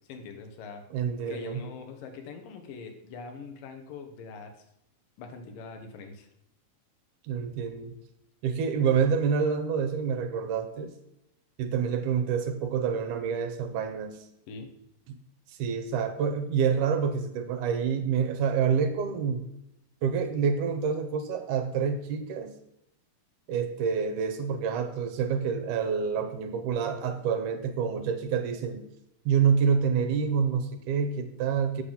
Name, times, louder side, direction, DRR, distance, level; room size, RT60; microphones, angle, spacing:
voice 1, 0.1-0.8 1.3-4.7 5.2-6.3 14.5-14.7, left 4 dB, 90° left, 6 dB, 2.9 m, -43 dB
voice 2, 0.9-1.6 7.2-8.0 8.4-10.9 11.6-14.2 15.1-15.2 15.5-19.5 20.0-22.5 23.5-28.8 29.3-31.8, right 6 dB, 75° right, 8 dB, 2.2 m, -27 dB
8.5 x 5.5 x 7.2 m, 0.81 s
omnidirectional pair, 3.8 m